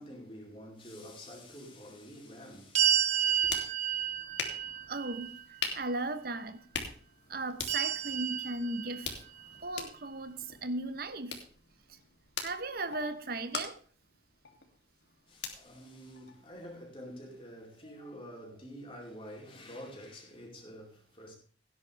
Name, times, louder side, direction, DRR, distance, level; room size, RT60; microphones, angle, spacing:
voice 1, 0.0-3.6 15.3-21.3, equal, 30° left, 4.7 m, -48 dB
sound 1, 2.7-5.9 7.7-9.4, right 10 dB, 40° right, 1.4 m, -31 dB
sound 2, 3.1-16.8, left 6 dB, 70° left, 2.8 m, -44 dB
voice 2, 4.9-5.3 5.7-6.6 7.3-9.2 9.6-11.4 11.9-12.0 12.4-13.8, right 2 dB, 55° right, 1.1 m, -36 dB
17.0 x 10.5 x 3.5 m
head